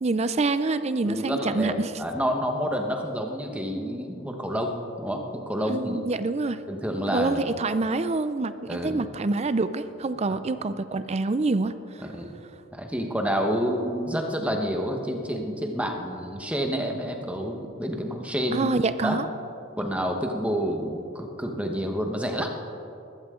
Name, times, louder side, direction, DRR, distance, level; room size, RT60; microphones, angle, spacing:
voice 1, 0.0-1.9 5.7-6.6 7.1-11.7 18.5-19.3, right 3 dB, 35° right, 12 dB, 0.5 m, -26 dB
voice 2, 1.0-6.0 6.7-7.4 8.7-9.0 12.0-12.3 12.7-18.7 19.0-19.2 19.8-22.5, equal, 5° right, 3 dB, 1.2 m, -29 dB
20.0 x 15.0 x 3.8 m, 2.7 s
head